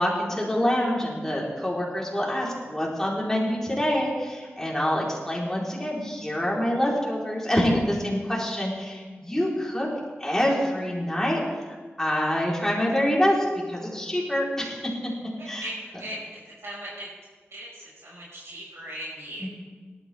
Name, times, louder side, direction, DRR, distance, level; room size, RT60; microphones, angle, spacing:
voice 1, 0.0-9.9 10.2-15.1 15.5-15.7 19.4-19.5, equal, 10° left, -5 dB, 4.0 m, -26 dB
voice 2, 15.4-17.1 17.5-19.5, right 1 dB, 80° right, -6 dB, 5.3 m, -39 dB
18.5 x 12.5 x 3.5 m, 1.5 s
wide cardioid pair, 70°, 4 cm